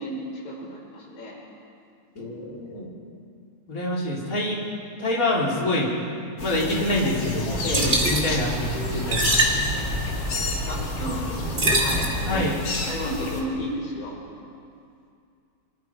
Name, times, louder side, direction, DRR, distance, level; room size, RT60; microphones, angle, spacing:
voice 1, 0.0-1.4 6.4-6.5 7.6-7.9 10.7-12.5 12.9-14.2, equal, 65° left, -4 dB, 7.4 m, -32 dB
voice 2, 2.1-2.9 3.7-4.6 5.0-5.9 6.4-9.4 11.6-11.8 12.2-12.6, left 1 dB, 20° left, -4 dB, 4.1 m, -26 dB
sound 1, 6.4-13.4, left 3 dB, 40° left, 3.2 m, -32 dB
sound 2, 7.5-12.5, right 1 dB, 20° right, 2.3 m, -25 dB
26.0 x 25.5 x 4.9 m, 2.4 s
omnidirectional pair, 4.4 m